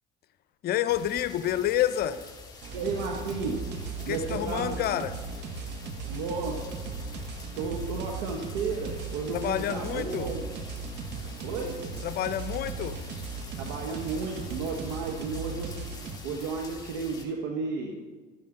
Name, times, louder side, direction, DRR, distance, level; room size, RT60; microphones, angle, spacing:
voice 1, 0.6-2.2 4.1-5.2 9.3-10.3 12.0-13.0, left 11 dB, 50° left, 13 dB, 0.7 m, -28 dB
sound 1, 0.9-17.2, left 4 dB, 20° left, 3.0 m, -46 dB
sound 2, 2.6-16.2, right 4 dB, 60° right, 1.4 m, -37 dB
voice 2, 2.7-3.6 4.0-4.8 6.1-6.7 7.6-10.4 11.4-11.9 13.5-15.7 16.2-17.9, right 4 dB, 75° right, 1 dB, 1.2 m, -33 dB
13.0 x 10.5 x 3.9 m, 1.4 s
hypercardioid pair, 70°, 20 cm